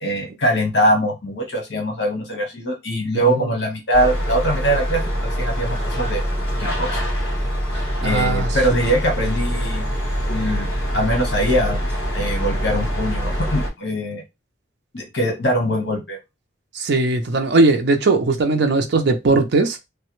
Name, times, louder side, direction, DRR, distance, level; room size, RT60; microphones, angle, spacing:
voice 1, 0.0-5.0 5.4-6.2 6.6-7.0 8.0-9.8 10.3-10.7 10.9-11.8 12.1-14.2 14.9-16.2, right 1 dB, 60° left, 1.1 m, -22 dB
voice 2, 3.1-3.5 8.0-8.5 16.7-19.8, right 3 dB, 60° right, 0.5 m, -19 dB
sound 1, 3.9-13.7, equal, 25° left, 2.0 m, -24 dB
3.2 x 2.1 x 3.0 m
head